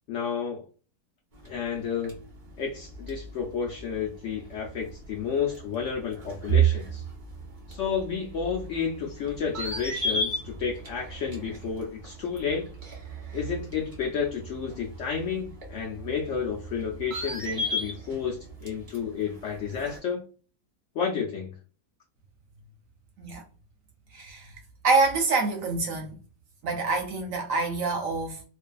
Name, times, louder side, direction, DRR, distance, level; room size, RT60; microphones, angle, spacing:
voice 1, 0.1-0.6 1.4-2.2 2.6-7.0 7.7-12.7 13.3-20.2 20.9-21.5, left 6 dB, 70° left, 0.7 m, -31 dB
sound 1, 1.3-20.0, right 4 dB, 35° right, 0.9 m, -34 dB
voice 2, 24.1-24.5 24.8-26.1 26.6-28.5, right 3 dB, 70° right, 0.9 m, -26 dB
2.5 x 2.3 x 2.3 m
omnidirectional pair, 1.7 m